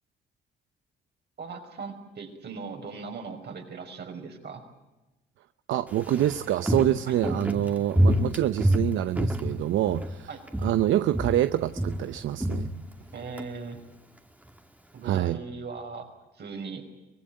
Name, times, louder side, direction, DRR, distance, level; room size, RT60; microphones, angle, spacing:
voice 1, 1.4-4.6 7.1-7.2 10.3-10.4 13.1-13.8 14.9-16.1 16.3-16.9, right 4 dB, 60° right, 4 dB, 5.6 m, -39 dB
voice 2, 5.7-10.3 10.6-12.7 15.0-15.4, right 12 dB, 80° right, 11 dB, 0.8 m, -26 dB
Walk footsteps, 5.9-10.2 10.5-10.9 11.1-13.5 13.8-13.9, equal, 5° right, 2.2 m, -27 dB
24.0 x 19.5 x 9.0 m, 1.0 s
cardioid pair, 90°, 20 cm